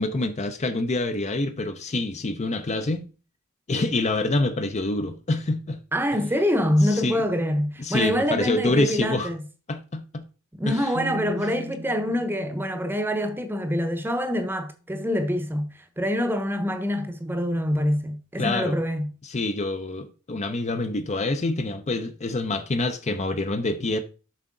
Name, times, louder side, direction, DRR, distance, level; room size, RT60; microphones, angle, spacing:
voice 1, 0.0-3.1 3.7-5.8 6.9-7.2 7.8-9.3 9.7-10.2 10.7-10.9 18.4-18.8 19.2-24.0, left 2 dB, 30° left, 0.6 m, -26 dB
voice 2, 5.9-9.4 10.5-15.7 16.0-19.1, equal, 10° right, 0.8 m, -25 dB
sound 1, 10.9-14.9, right 2 dB, 60° right, 1.0 m, -40 dB
7.5 x 5.6 x 3.8 m
head